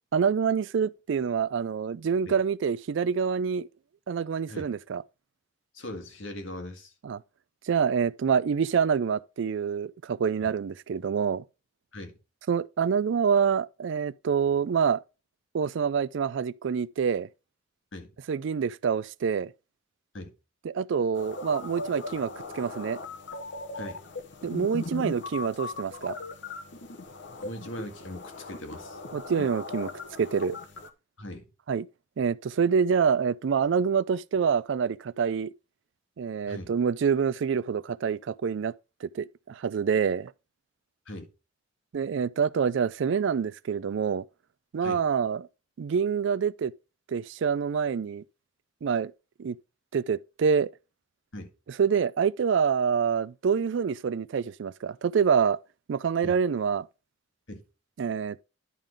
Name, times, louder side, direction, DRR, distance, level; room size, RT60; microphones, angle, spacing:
voice 1, 0.1-3.7 4.1-5.0 7.0-7.2 7.7-11.4 12.5-15.0 15.5-17.3 18.3-19.5 20.6-23.0 24.4-26.2 29.1-29.9 30.2-30.6 31.7-31.9 32.2-35.5 36.2-38.7 39.0-40.3 41.9-44.2 44.7-45.5 45.8-46.7 47.1-48.2 48.8-49.1 49.4-49.6 49.9-50.7 51.8-55.6 55.9-56.9 58.0-58.4, right 6 dB, 65° right, 0.4 m, -26 dB
voice 2, 5.7-6.9 10.4-10.5 11.9-12.1 17.9-18.1 20.1-20.3 23.7-24.0 27.4-29.0 31.2-31.4 36.5-36.7 41.1-41.3 44.8-45.0 51.3-51.5 56.2-56.4 57.5-57.6, left 1 dB, 80° left, 1.8 m, -40 dB
sound 1, 21.1-30.9, left 3 dB, 65° left, 1.1 m, -39 dB
11.0 x 3.8 x 5.0 m
head